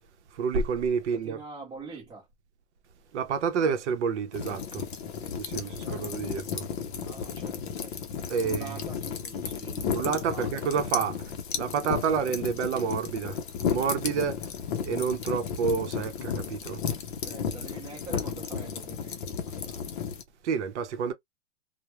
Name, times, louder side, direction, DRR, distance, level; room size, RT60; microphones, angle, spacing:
voice 1, 0.3-1.4 3.1-4.8 5.4-6.6 8.3-8.8 9.9-11.2 11.6-13.4 13.6-14.4 14.8-16.8 20.4-21.1, right 6 dB, 65° right, 0.7 m, -29 dB
voice 2, 1.1-2.3 5.2-5.4 5.7-6.1 7.0-7.9 8.4-10.5 17.2-19.9, right 4 dB, 10° right, 0.6 m, -45 dB
sound 1, 4.3-20.2, left 7 dB, 40° left, 0.6 m, -34 dB
2.1 x 2.1 x 2.9 m
supercardioid pair, 165°, 37 cm